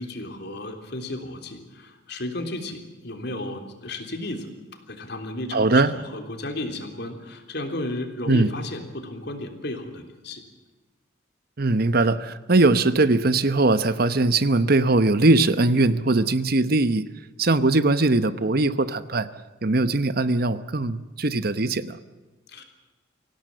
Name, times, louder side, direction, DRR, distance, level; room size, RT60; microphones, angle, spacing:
voice 1, 0.0-4.5 4.9-10.4 22.5-22.6, left 1 dB, 55° left, 5 dB, 3.5 m, -34 dB
voice 2, 5.5-5.9 8.3-8.5 11.6-17.1 17.4-19.3 19.6-22.0, right 2 dB, 50° right, 13 dB, 1.0 m, -20 dB
25.0 x 17.0 x 7.7 m, 1.2 s
head